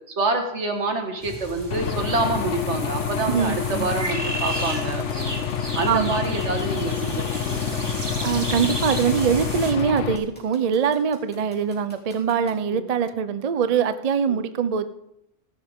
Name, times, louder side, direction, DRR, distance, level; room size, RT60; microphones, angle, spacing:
voice 1, 0.1-5.4 5.8-7.8 11.4-11.5 12.7-12.9 14.3-14.4, right 3 dB, 65° right, 5 dB, 1.8 m, -27 dB
sound 1, 1.2-9.7, right 1 dB, 20° right, 1.4 m, -34 dB
Aircraft / Engine, 1.7-10.2, left 7 dB, 75° left, 1.1 m, -28 dB
voice 2, 3.3-3.9 5.9-6.2 8.2-14.9, right 7 dB, 50° right, 12 dB, 0.5 m, -23 dB
sound 2, 4.5-12.5, equal, 5° left, 3.4 m, -47 dB
15.0 x 11.0 x 3.6 m, 0.80 s
omnidirectional pair, 1.3 m